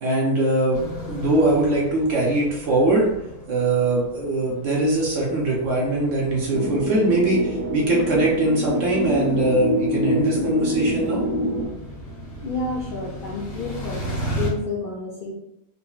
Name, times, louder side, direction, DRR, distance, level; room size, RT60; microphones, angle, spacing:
voice 1, 0.0-3.1 3.5-11.2, right 2 dB, 65° right, -3 dB, 0.9 m, -21 dB
sound 1, 0.7-14.5, equal, 50° left, 1.1 m, -36 dB
sound 2, 6.5-11.7, equal, 90° right, 1.3 m, -25 dB
voice 2, 12.4-15.3, left 3 dB, 85° left, -4 dB, 0.4 m, -30 dB
3.7 x 2.0 x 2.3 m, 0.82 s
omnidirectional pair, 1.5 m